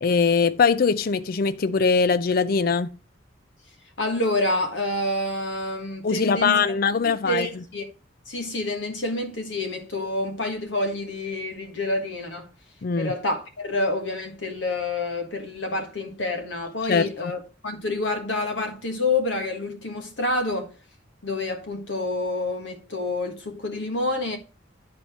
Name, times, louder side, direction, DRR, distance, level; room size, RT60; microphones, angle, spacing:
voice 1, 0.0-2.9 6.0-7.6 12.8-13.1 16.9-17.3, left 5 dB, 50° left, 0.4 m, -22 dB
voice 2, 4.0-6.6 7.0-7.8 8.3-12.5 13.0-20.7 21.2-24.4, left 2 dB, 75° left, 1.5 m, -28 dB
9.6 x 4.3 x 4.3 m
head